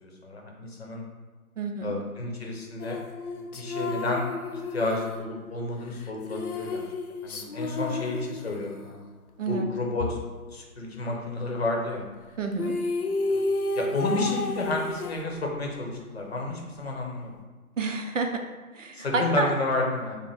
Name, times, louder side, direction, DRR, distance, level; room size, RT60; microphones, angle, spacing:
voice 1, 0.0-1.0 1.8-3.0 3.3-4.2 4.5-6.8 7.2-9.0 9.5-10.2 10.5-12.1 13.3-13.4 13.8-17.4 18.9-20.2, left 2 dB, 45° left, 0 dB, 0.8 m, -31 dB
voice 2, 1.6-1.9 9.4-9.7 12.4-12.7 17.8-18.4 18.7-19.5, right 3 dB, 60° right, 4 dB, 0.6 m, -29 dB
sound 1, 2.8-9.0 12.2-12.3 12.5-15.7, left 2 dB, 75° left, 0.7 m, -32 dB
5.5 x 2.1 x 3.4 m, 1.4 s
figure-of-eight pair, 150°, 44 cm